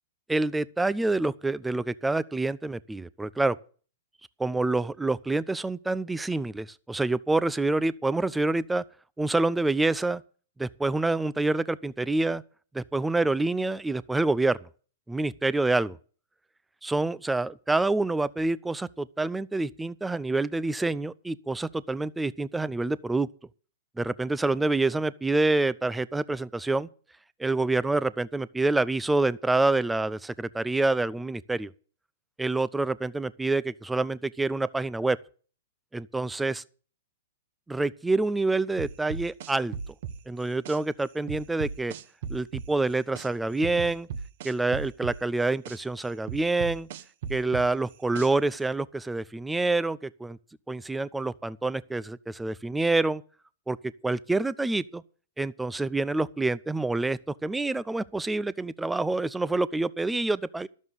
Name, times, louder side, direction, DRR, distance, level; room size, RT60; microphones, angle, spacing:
voice 1, 0.3-3.6 4.4-8.8 9.2-10.2 10.6-12.4 12.7-14.7 15.1-16.0 16.8-23.3 24.0-26.9 27.4-31.7 32.4-35.2 35.9-36.6 37.7-39.7 40.3-41.9 42.3-44.1 44.4-46.9 47.3-50.4 50.7-53.2 53.7-53.8 54.0-55.0 55.4-60.7, right 2 dB, 5° right, 0.5 m, -27 dB
sound 1, 38.8-40.8 41.3-43.3 43.6-45.8 46.3-48.5, right 7 dB, 55° right, 1.2 m, -36 dB
12.5 x 7.3 x 7.9 m
hypercardioid pair, 125°, 0 cm